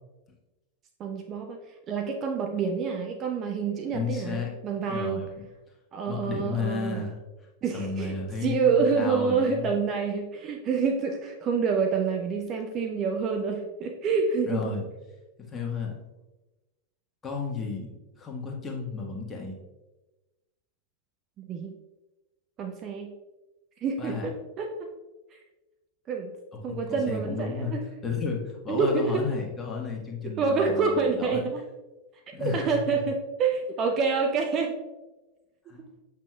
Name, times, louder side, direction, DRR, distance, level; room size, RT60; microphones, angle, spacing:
voice 1, 1.0-1.6 1.9-5.2 5.9-7.0 7.6-8.1 8.4-14.7 21.5-21.7 22.6-23.1 23.8-24.9 26.1-26.3 26.6-27.8 28.7-29.2 30.4-31.6 32.4-34.8, right 5 dB, 30° right, 3 dB, 0.6 m, -27 dB
voice 2, 3.9-4.5 4.9-5.5 6.1-7.2 7.7-9.7 14.5-14.9 15.5-16.0 17.2-19.6 24.0-24.3 26.5-27.7 28.0-31.4 32.3-33.0 35.7-35.8, left 4 dB, 20° left, 0 dB, 1.3 m, -33 dB
7.4 x 5.8 x 2.3 m, 1.1 s
figure-of-eight pair, 90°, 0 cm